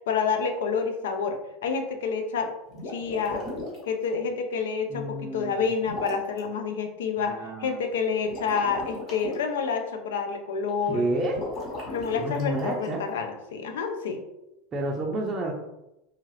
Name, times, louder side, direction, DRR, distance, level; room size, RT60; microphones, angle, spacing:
voice 1, 0.1-2.5 2.9-3.4 3.9-7.3 7.6-11.0 11.9-14.2, left 5 dB, 85° left, 6 dB, 0.4 m, -28 dB
sound 1, 2.7-3.9 5.8-6.4 8.2-9.3 11.3-13.0, left 2 dB, 50° left, 1.2 m, -37 dB
voice 2, 4.9-5.6 7.2-7.8 10.8-11.4 12.2-13.0 14.7-15.5, right 1 dB, 25° right, -1 dB, 0.4 m, -29 dB
2.8 x 2.3 x 3.2 m, 0.91 s
supercardioid pair, 120°, 0 cm